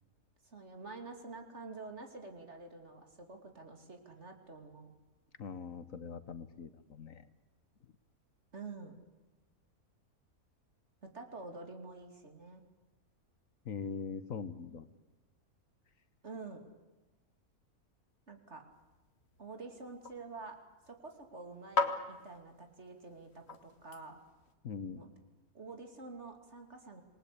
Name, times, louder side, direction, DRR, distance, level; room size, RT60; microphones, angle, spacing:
voice 1, 0.4-4.9 8.5-8.9 11.0-12.6 16.2-16.6 18.3-18.6 19.4-20.6 20.9-24.2 25.0-25.1 25.5-27.0, right 3 dB, 50° right, 5 dB, 3.1 m, -48 dB
voice 2, 5.4-7.3 13.6-14.9 24.6-25.0, left 6 dB, 65° left, 13 dB, 1.5 m, -42 dB
sound 1, 18.7-24.5, left 4 dB, 45° left, 1.9 m, -41 dB
27.0 x 19.5 x 8.6 m, 1.1 s
omnidirectional pair, 1.6 m